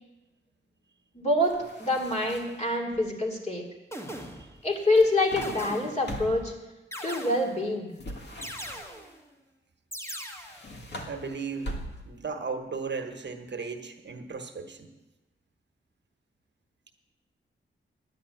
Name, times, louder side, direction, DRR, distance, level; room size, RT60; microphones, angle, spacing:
voice 1, 1.1-3.7 4.6-6.5 7.0-7.9, left 1 dB, 35° left, 0 dB, 2.7 m, -26 dB
sound 1, 1.4-2.7 4.7-6.6 8.0-9.1 10.3-12.3, equal, 60° left, 1.9 m, -41 dB
sound 2, 2.9-3.1 3.9-4.7 5.4-6.2 6.9-7.7 8.4-9.2 9.9-10.7, equal, 15° left, 1.6 m, -40 dB
voice 2, 4.2-4.5 11.1-11.8 12.0-14.9, right 5 dB, 60° right, 6 dB, 1.2 m, -36 dB
10.0 x 9.8 x 7.7 m, 1.0 s
wide cardioid pair, 100°, 20 cm